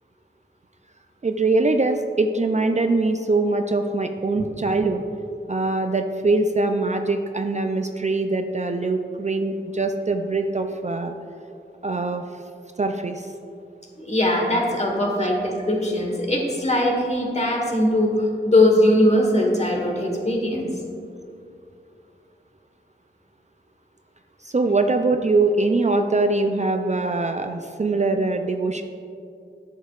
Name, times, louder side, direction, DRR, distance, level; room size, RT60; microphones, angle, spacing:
voice 1, 1.2-5.0 5.5-11.1 11.8-12.2 12.8-13.3 24.4-28.8, right 3 dB, 35° right, 6 dB, 0.4 m, -22 dB
voice 2, 14.0-20.7, left 1 dB, 35° left, 0 dB, 1.3 m, -21 dB
11.0 x 6.5 x 2.4 m, 2.5 s
wide cardioid pair, 60°, 20 cm